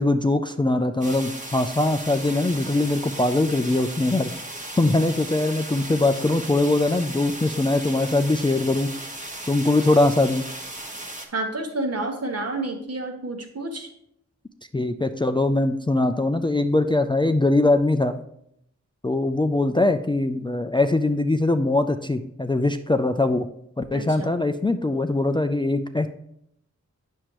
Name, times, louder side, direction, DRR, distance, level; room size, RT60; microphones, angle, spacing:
voice 1, 0.0-4.3 4.8-8.9 9.5-10.4 14.7-18.2 19.0-23.5 23.8-26.1, left 2 dB, 15° left, 8 dB, 0.3 m, -22 dB
sound 1, 1.0-11.3, right 1 dB, 25° right, 1.2 m, -36 dB
voice 2, 11.3-13.9 23.9-24.3, right 2 dB, 55° right, 4 dB, 1.1 m, -29 dB
8.4 x 6.3 x 3.0 m, 0.73 s
wide cardioid pair, 75°, 29 cm